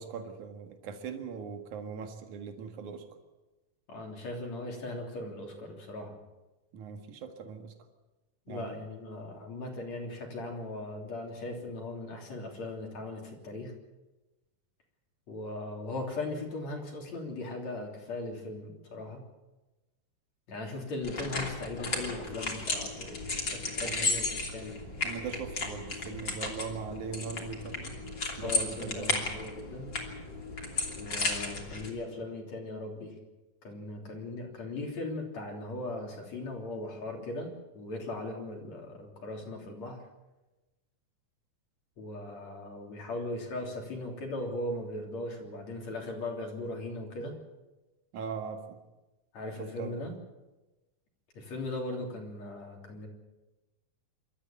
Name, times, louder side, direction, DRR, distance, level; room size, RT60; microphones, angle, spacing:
voice 1, 0.0-3.1 6.7-7.7 8.5-8.8 23.8-24.1 25.0-28.0 28.4-29.3 48.1-48.8 49.6-50.1, right 6 dB, 70° right, 5 dB, 3.1 m, -40 dB
voice 2, 3.9-6.2 8.5-13.7 15.3-19.2 20.5-24.8 28.4-29.9 31.0-33.2 33.6-40.0 42.0-47.4 49.3-50.1 51.3-53.1, left 2 dB, 55° left, 1 dB, 4.5 m, -38 dB
sound 1, 21.0-31.9, left 3 dB, 35° left, 3.5 m, -34 dB
26.5 x 13.0 x 8.7 m, 1.1 s
omnidirectional pair, 3.7 m